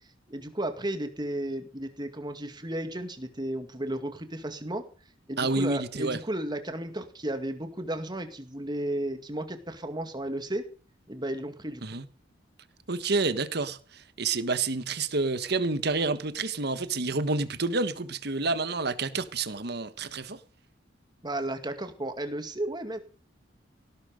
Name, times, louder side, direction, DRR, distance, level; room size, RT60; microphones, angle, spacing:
voice 1, 0.3-4.9 5.3-10.7 11.1-11.8 21.2-23.0, right 1 dB, 25° right, 2.2 m, -33 dB
voice 2, 5.4-6.2 11.8-12.0 12.9-20.4, right 3 dB, 60° right, 1.4 m, -29 dB
17.5 x 11.5 x 5.2 m
head